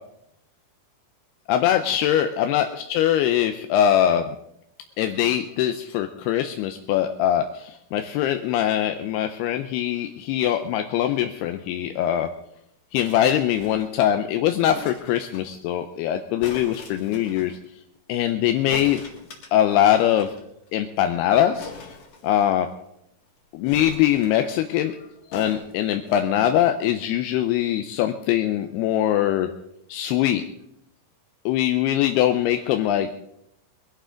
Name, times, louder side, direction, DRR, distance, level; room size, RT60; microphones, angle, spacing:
voice 1, 1.5-4.4 5.0-12.3 12.9-17.6 18.1-19.0 19.5-20.3 20.7-21.7 22.2-22.7 23.5-25.0 25.3-29.5 29.9-30.4 31.5-33.2, left 11 dB, 85° left, 6 dB, 2.7 m, -22 dB
sound 1, 12.9-14.0 14.7-15.5 16.4-17.5 18.7-20.4 20.7-20.8 21.0-21.1 21.5-22.7 23.7-24.6 25.3-26.3 27.0-27.1, left 4 dB, 50° left, 2.9 m, -41 dB
22.5 x 11.5 x 3.8 m, 0.78 s
omnidirectional pair, 4.6 m